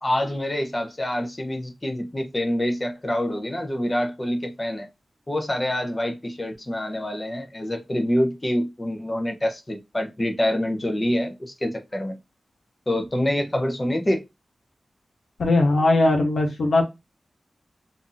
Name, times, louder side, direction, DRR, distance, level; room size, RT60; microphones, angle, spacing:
voice 1, 0.0-4.9 5.3-12.2 12.9-14.2, left 1 dB, 25° left, 0.8 m, -26 dB
voice 2, 15.4-16.8, left 2 dB, 90° left, 1.1 m, -19 dB
2.8 x 2.6 x 3.8 m
wide cardioid pair, 75°, 0 cm